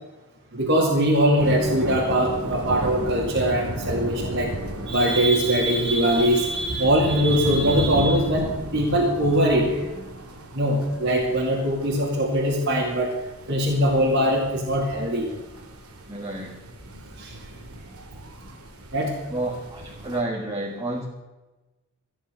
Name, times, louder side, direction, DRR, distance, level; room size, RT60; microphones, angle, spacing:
voice 1, 0.5-4.5 4.9-9.8 10.5-13.1 13.5-15.3 17.2-17.3 18.9-19.1, equal, 55° right, -3 dB, 2.4 m, -21 dB
sound 1, 1.4-20.2, right 1 dB, 85° right, 2.2 m, -35 dB
voice 2, 16.1-16.6 19.3-21.0, right 2 dB, 20° right, -1 dB, 1.5 m, -30 dB
15.5 x 9.9 x 6.8 m, 1.1 s
head